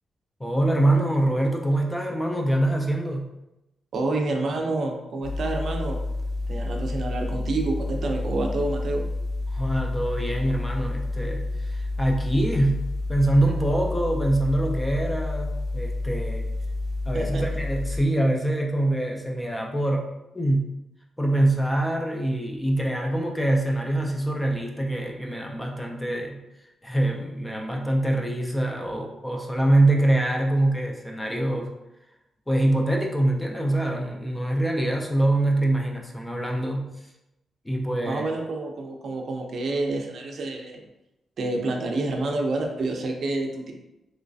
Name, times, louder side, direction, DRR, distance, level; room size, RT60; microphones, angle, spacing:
voice 1, 0.4-3.3 9.5-16.5 17.1-20.1 20.3-20.7 21.2-26.4 26.8-31.7 32.5-36.9 37.7-38.2, right 1 dB, 10° left, 0 dB, 0.3 m, -24 dB
voice 2, 3.9-6.0 6.5-9.1 17.1-17.4 38.0-40.8 41.4-43.7, right 2 dB, 50° right, 2 dB, 0.5 m, -28 dB
sound 1, 5.2-18.0, left 2 dB, 80° left, 0.5 m, -29 dB
3.1 x 3.0 x 2.6 m, 0.92 s
wide cardioid pair, 150°, 0 cm